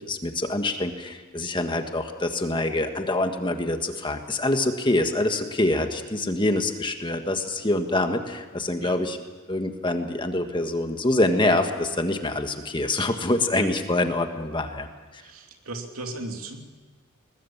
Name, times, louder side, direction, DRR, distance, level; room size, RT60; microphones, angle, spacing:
voice 1, 0.1-9.2 9.5-14.9, left 2 dB, 25° left, 6 dB, 1.5 m, -25 dB
voice 2, 15.2-16.6, right 2 dB, 80° right, 3 dB, 2.9 m, -36 dB
21.5 x 20.5 x 7.4 m, 1.5 s
head